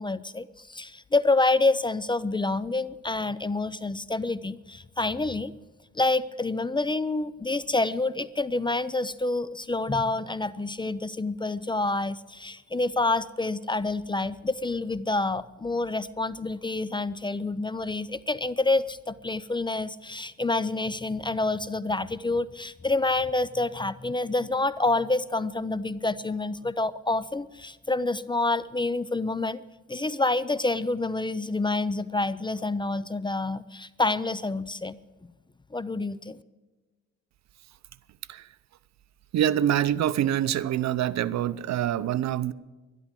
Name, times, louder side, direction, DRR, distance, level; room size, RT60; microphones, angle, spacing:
voice 1, 0.0-5.5 5.9-29.6 29.9-35.0 35.7-36.4, left 2 dB, 15° left, 0.5 m, -28 dB
voice 2, 39.3-42.5, right 11 dB, 65° right, 0.7 m, -25 dB
12.0 x 11.5 x 7.6 m
cardioid pair, 90°, 30 cm